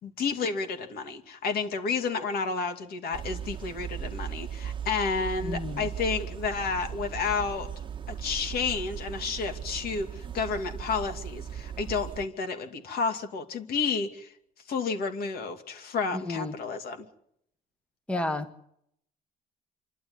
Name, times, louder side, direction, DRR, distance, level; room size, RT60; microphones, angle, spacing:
voice 1, 0.0-7.7 8.2-14.3 14.7-17.1, left 5 dB, 65° left, 7 dB, 2.6 m, -31 dB
sound 1, 3.1-12.3, right 8 dB, 30° right, 1.3 m, -38 dB
voice 2, 5.4-5.9 16.1-16.5 18.1-18.5, left 2 dB, 5° left, 10 dB, 1.3 m, -31 dB
27.0 x 12.0 x 9.6 m, 0.74 s
cardioid pair, 110°, 17 cm